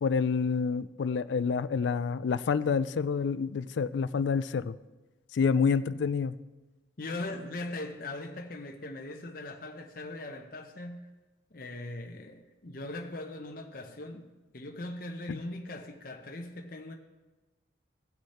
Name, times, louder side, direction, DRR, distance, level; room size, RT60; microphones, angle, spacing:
voice 1, 0.0-4.8 5.3-6.4 15.3-15.4, left 5 dB, 70° left, 0.4 m, -28 dB
voice 2, 7.0-11.0 11.5-16.9, left 2 dB, 50° left, 0.8 m, -40 dB
17.0 x 6.4 x 4.3 m
head